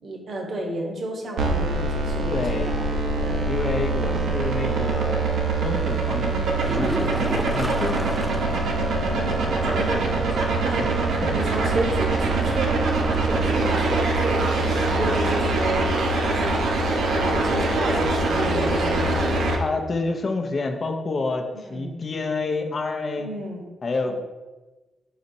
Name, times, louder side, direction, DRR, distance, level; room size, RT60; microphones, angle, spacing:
voice 1, 0.0-2.9 3.2-3.4 4.0-4.2 9.0-16.6 17.2-19.3 21.6-21.9 23.2-23.6 24.1-24.2, right 1 dB, 60° right, 2 dB, 0.9 m, -31 dB
sound 1, 1.4-19.5, right 2 dB, 80° right, 0.6 m, -23 dB
voice 2, 2.3-2.8 3.5-5.3 5.5-7.1 7.4-8.3 10.8-10.9 11.2-11.3 17.9-18.0 19.6-23.3 23.8-24.1, left 3 dB, 50° left, 4 dB, 0.5 m, -28 dB
sound 2, 6.6-8.8 9.2-9.3 9.7-9.8 13.6-13.7, right 1 dB, 10° right, 0.3 m, -30 dB
4.1 x 4.1 x 2.7 m, 1.2 s
cardioid pair, 70°, 0 cm